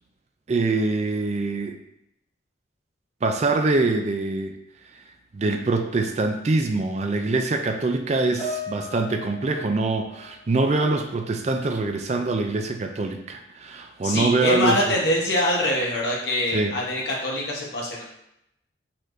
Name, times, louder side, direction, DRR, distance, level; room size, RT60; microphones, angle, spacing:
voice 1, 0.5-1.8 3.2-4.5 5.3-14.9 16.5-16.7, right 3 dB, 35° right, 5 dB, 0.4 m, -24 dB
Piano, 8.4-11.0 11.3-11.6 12.4-12.5, left 1 dB, 20° left, 1.7 m, -38 dB
voice 2, 14.0-18.0, left 1 dB, 60° left, -3 dB, 1.1 m, -24 dB
4.7 x 4.3 x 2.6 m, 0.79 s
head